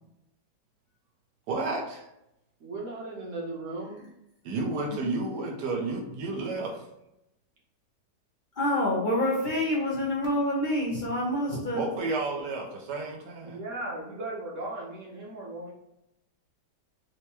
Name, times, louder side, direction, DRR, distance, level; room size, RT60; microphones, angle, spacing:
voice 1, 1.5-2.1 4.4-6.9 11.7-13.6, right 3 dB, 75° right, 0 dB, 1.4 m, -31 dB
voice 2, 2.6-4.1 13.4-15.7, right 2 dB, 50° right, -3 dB, 1.2 m, -37 dB
voice 3, 8.6-11.8, left 1 dB, 50° left, -5 dB, 0.5 m, -27 dB
4.5 x 2.2 x 2.8 m, 0.84 s
omnidirectional pair, 1.9 m